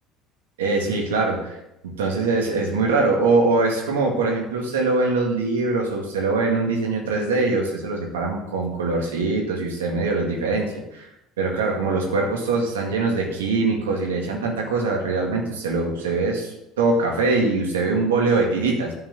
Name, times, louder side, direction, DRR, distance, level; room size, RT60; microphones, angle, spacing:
voice 1, 0.6-1.6 1.8-11.1 11.4-18.9, right 3 dB, 85° right, 0 dB, 2.2 m, -23 dB
10.0 x 4.7 x 8.0 m, 0.87 s
hypercardioid pair, 70°, 0 cm